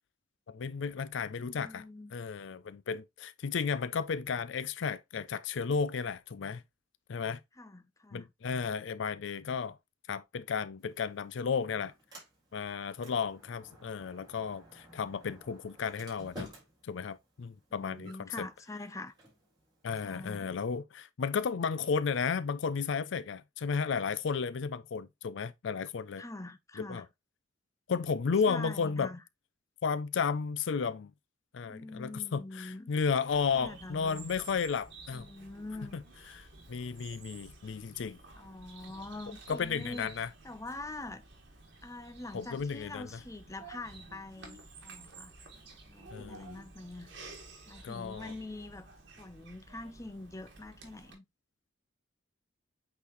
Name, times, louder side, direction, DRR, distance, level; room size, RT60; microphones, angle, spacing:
voice 1, 0.5-1.8 2.1-6.6 7.1-7.4 8.1-9.8 10.1-11.9 12.5-16.5 16.8-18.5 19.8-26.2 26.8-27.0 27.9-29.1 29.8-31.1 31.5-35.3 35.9-36.0 36.3-38.2 39.5-40.3 42.3-43.1 46.1-46.6 47.8-48.3, left 5 dB, 70° left, 0.4 m, -33 dB
voice 2, 1.2-2.2 7.6-8.3 17.7-19.1 20.0-20.5 26.2-27.1 28.5-29.2 31.7-32.9 33.5-34.3 35.1-36.0 38.4-41.2 41.8-45.3 45.9-47.1 47.7-48.9 49.2-51.2, left 2 dB, 15° left, 0.6 m, -44 dB
Sliding door, 10.8-20.8, right 1 dB, 25° right, 3.7 m, -54 dB
Bird vocalization bird call bird song, 33.3-51.1, right 3 dB, 65° right, 2.3 m, -52 dB
8.4 x 4.0 x 3.0 m
head